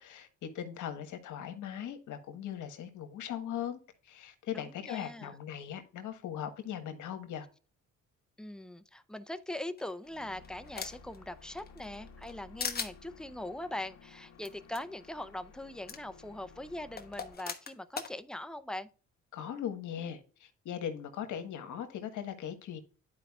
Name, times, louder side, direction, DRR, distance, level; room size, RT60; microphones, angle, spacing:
voice 1, 0.0-7.4 19.3-22.8, left 9 dB, 80° left, 1.5 m, -39 dB
voice 2, 4.5-5.3 8.4-18.9, left 1 dB, ahead, 0.6 m, -41 dB
sound 1, 9.8-11.2 11.6-12.3 12.6-12.9 14.4-14.5 14.7-14.8 15.9-16.0 17.0-18.1, left 5 dB, 30° left, 1.1 m, -38 dB
sound 2, 10.0-17.3, left 5 dB, 60° left, 1.4 m, -55 dB
11.5 x 4.9 x 2.4 m
cardioid pair, 90°, 30 cm